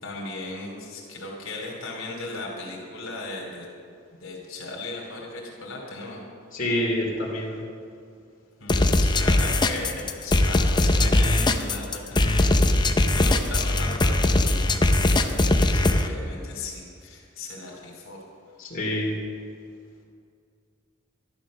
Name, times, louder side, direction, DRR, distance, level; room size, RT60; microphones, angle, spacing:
voice 1, 0.0-3.6 4.1-6.2 8.6-18.2, left 2 dB, 70° left, -2 dB, 2.8 m, -37 dB
voice 2, 6.5-7.6 18.6-19.1, left 1 dB, 40° left, -4 dB, 2.9 m, -27 dB
sound 1, 8.7-16.1, left 2 dB, 20° left, 0.6 m, -20 dB
12.5 x 11.0 x 6.3 m, 2.3 s
head